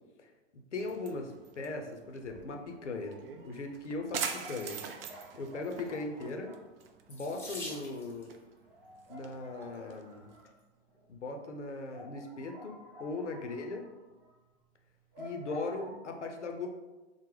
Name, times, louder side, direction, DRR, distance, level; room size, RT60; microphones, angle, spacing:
voice 1, 0.2-4.8 5.4-6.5 7.1-8.3 9.1-10.3 11.1-13.8 15.2-16.7, left 3 dB, 80° left, 3 dB, 0.6 m, -39 dB
sound 1, 0.8-10.4, right 6 dB, 55° right, 0.4 m, -44 dB
sound 2, 2.9-3.3 3.7-3.8 4.4-10.7 11.1-11.2 11.5-11.6 11.9-16.0, equal, 35° right, 0.8 m, -52 dB
Water tap faucet / Sink (filling or washing), 7.1-8.3 9.4-9.8 10.4-10.5 10.9-11.0, left 2 dB, 5° left, 0.6 m, -45 dB
3.8 x 2.1 x 3.2 m, 1.1 s
figure-of-eight pair, 100°, 35 cm